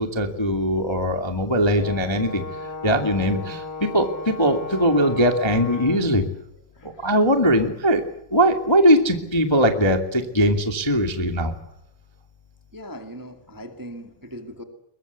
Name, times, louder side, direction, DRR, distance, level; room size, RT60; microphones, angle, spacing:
voice 1, 0.0-2.4 2.8-6.2 6.8-11.5, equal, 15° left, 5 dB, 0.8 m, -20 dB
Brass instrument, 1.7-6.1, left 2 dB, 65° left, 7.7 m, -35 dB
voice 2, 6.7-7.1 12.7-14.6, equal, 25° right, 5 dB, 0.4 m, -39 dB
22.5 x 22.0 x 8.1 m, 0.80 s
omnidirectional pair, 4.6 m